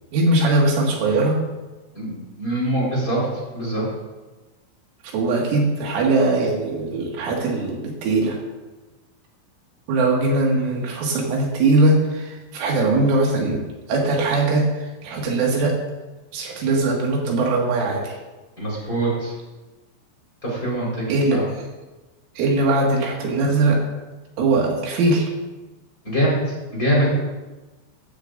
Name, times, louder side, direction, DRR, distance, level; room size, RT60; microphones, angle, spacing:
voice 1, 0.1-1.4 5.1-8.4 9.9-13.6 13.9-14.7 15.0-15.8 16.3-18.2 21.1-21.4 22.4-23.8 24.4-25.3, right 2 dB, 75° right, -1 dB, 4.5 m, -20 dB
voice 2, 1.9-3.3 3.5-3.8 18.6-19.3 20.4-21.0 21.3-21.4 26.0-26.4 26.7-27.1, right 1 dB, 20° left, -5 dB, 4.3 m, -23 dB
17.0 x 14.0 x 2.6 m, 1.2 s
omnidirectional pair, 5.7 m